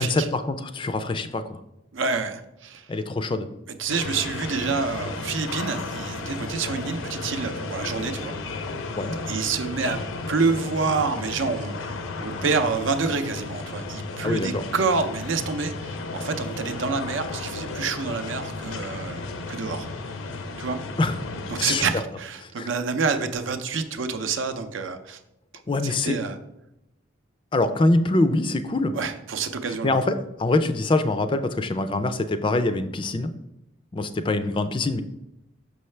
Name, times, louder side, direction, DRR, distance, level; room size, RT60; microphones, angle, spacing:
voice 1, 0.0-1.6 2.9-3.5 8.9-9.2 14.2-14.6 21.0-21.2 21.6-21.8 22.4-22.7 25.7-26.2 27.5-28.9 29.8-30.1 30.4-33.3 33.9-35.0, left 2 dB, 25° left, 10 dB, 0.3 m, -24 dB
voice 2, 1.9-2.9 3.8-8.3 9.3-10.0 10.3-11.8 12.2-19.9 20.6-20.8 21.5-25.2 25.8-26.4 28.9-30.0, right 4 dB, 75° right, 9 dB, 0.6 m, -27 dB
sound 1, 3.9-21.9, left 3 dB, 90° left, 0.6 m, -34 dB
6.3 x 5.5 x 3.2 m, 0.88 s
head